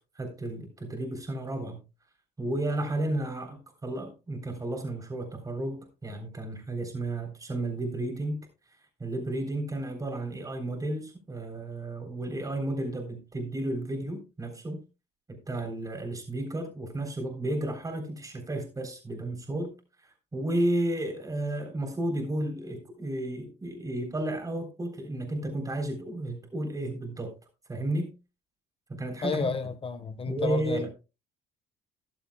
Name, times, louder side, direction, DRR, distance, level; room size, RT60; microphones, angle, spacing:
voice 1, 0.2-1.8 2.4-8.4 9.0-14.8 15.3-19.7 20.0-27.3 27.7-28.1 28.9-29.5 30.3-30.9, right 1 dB, 20° right, 3.6 m, -32 dB
voice 2, 29.2-30.9, left 5 dB, 35° left, 1.3 m, -31 dB
13.5 x 11.5 x 2.3 m
cardioid pair, 110°, 17 cm